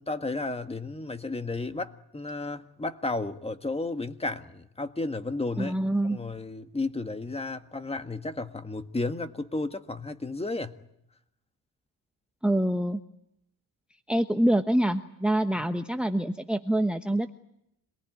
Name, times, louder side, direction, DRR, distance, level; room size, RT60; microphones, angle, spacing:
voice 1, 0.0-5.8 6.1-10.8, left 2 dB, 15° left, 1.6 m, -33 dB
voice 2, 5.6-6.2 12.4-13.0 14.1-17.3, right 1 dB, 5° right, 1.0 m, -25 dB
27.0 x 19.5 x 9.4 m
cardioid pair, 90°, 38 cm